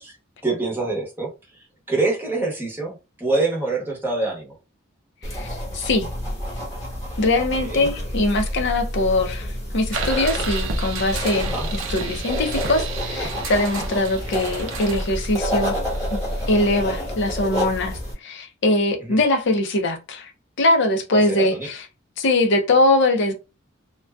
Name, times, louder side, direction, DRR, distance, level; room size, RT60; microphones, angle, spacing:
voice 1, 0.4-1.3 1.9-4.5 7.5-7.9 11.4-11.7 13.8-13.9 19.0-19.2 21.1-21.7, right 3 dB, 10° right, 0.8 m, -25 dB
sound 1, 5.2-18.1, equal, 15° left, 1.1 m, -29 dB
voice 2, 5.3-6.1 7.2-15.8 16.1-16.2 16.5-20.3 20.6-21.9 22.2-23.3, left 2 dB, 60° left, 0.5 m, -22 dB
sound 2, 9.9-16.5, right 3 dB, 65° right, 0.5 m, -30 dB
2.5 x 2.2 x 2.2 m
head